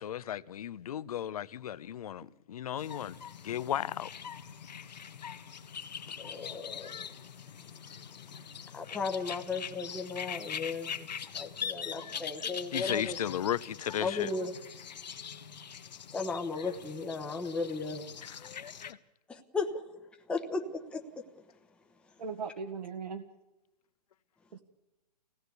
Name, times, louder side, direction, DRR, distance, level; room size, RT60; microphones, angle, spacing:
voice 1, 0.0-3.2 3.4-4.1 12.7-14.3 18.2-18.4, left 10 dB, 60° left, 0.8 m, -35 dB
sound 1, 2.8-18.9, left 7 dB, 80° left, 1.5 m, -42 dB
voice 2, 6.2-7.0 8.7-11.1 11.3-13.2 14.0-14.5 16.1-18.1 19.3-19.8 20.3-21.0, left 4 dB, 5° left, 1.0 m, -35 dB
voice 3, 12.1-12.5 14.4-14.5 22.2-23.2 24.5-24.6, right 5 dB, 75° right, 1.9 m, -40 dB
25.0 x 17.5 x 8.2 m
hypercardioid pair, 150°, 21 cm